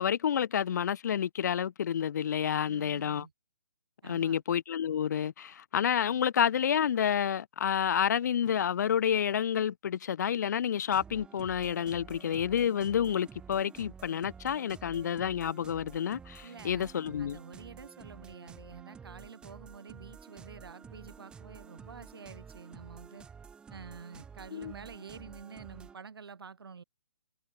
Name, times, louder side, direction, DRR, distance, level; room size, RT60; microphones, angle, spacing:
voice 1, 0.0-3.3 4.0-17.4 24.5-24.7, left 8 dB, 50° left, 0.9 m, -29 dB
voice 2, 2.6-3.3 4.0-4.4 16.4-23.3 23.7-26.8, right 5 dB, 75° right, 3.3 m, -48 dB
sound 1, 10.9-26.0, right 6 dB, 5° right, 3.8 m, -51 dB
hypercardioid pair, 165°, 12 cm